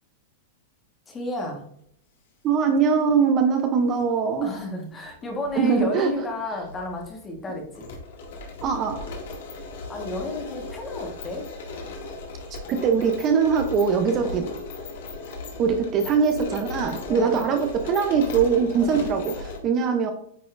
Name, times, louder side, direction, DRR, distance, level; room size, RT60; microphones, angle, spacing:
voice 1, 1.1-1.7 4.4-7.9 9.9-11.5 14.2-14.4 17.1-17.4 18.8-19.0, left 2 dB, 15° left, 1 dB, 1.3 m, -32 dB
voice 2, 2.4-4.5 5.6-6.1 8.6-9.1 12.5-14.5 15.6-20.1, right 6 dB, 25° right, 5 dB, 0.6 m, -22 dB
sound 1, 3.8-4.0 5.1-5.8 6.1-6.2 6.6-19.6, left 3 dB, 70° left, 1.8 m, -37 dB
9.2 x 4.1 x 2.5 m, 0.69 s
supercardioid pair, 160°, 0 cm